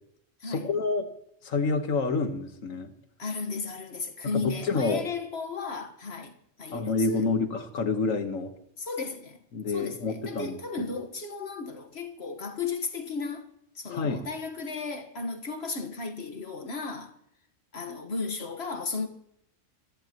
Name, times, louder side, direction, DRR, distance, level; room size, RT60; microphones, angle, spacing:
voice 1, 0.4-1.1 1.4-2.9 4.3-5.0 6.7-8.5 9.5-11.1 13.9-14.3, left 4 dB, 85° left, 1.7 m, -28 dB
voice 2, 3.2-6.3 6.6-7.3 8.8-13.5 13.8-17.1 17.7-19.1, left 4 dB, 55° left, 1.7 m, -35 dB
25.5 x 15.0 x 3.0 m
omnidirectional pair, 1.3 m